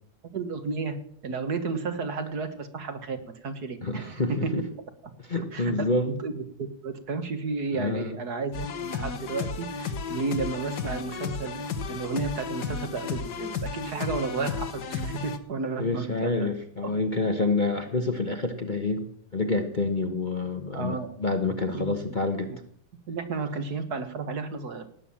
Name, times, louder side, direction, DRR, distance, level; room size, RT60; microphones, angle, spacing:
voice 1, 0.3-1.0 1.2-3.2 3.4-4.5 5.5-5.7 6.1-11.6 11.9-16.5 16.8-16.9 20.7-21.1 21.4-22.2 23.1-24.9, right 4 dB, 60° right, 8 dB, 2.0 m, -32 dB
voice 2, 3.8-4.6 5.3-6.1 7.7-8.1 15.8-22.5, left 3 dB, 30° left, 5 dB, 1.1 m, -28 dB
sound 1, 8.5-15.4, left 5 dB, 65° left, 1.8 m, -33 dB
18.0 x 9.3 x 7.2 m, 0.66 s
omnidirectional pair, 2.0 m